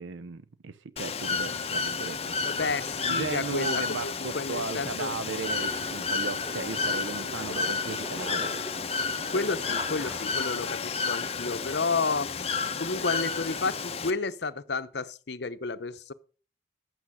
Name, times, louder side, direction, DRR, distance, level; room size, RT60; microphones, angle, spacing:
voice 1, 0.0-2.7 3.0-8.6, right 4 dB, 85° right, 0.6 m, -36 dB
Bird / Water, 1.0-14.1, left 5 dB, 30° left, 0.8 m, -31 dB
voice 2, 2.4-5.1 9.3-16.1, left 4 dB, 65° left, 0.8 m, -31 dB
sound 1, 4.7-10.7, equal, 15° right, 1.1 m, -43 dB
11.0 x 8.6 x 5.5 m
head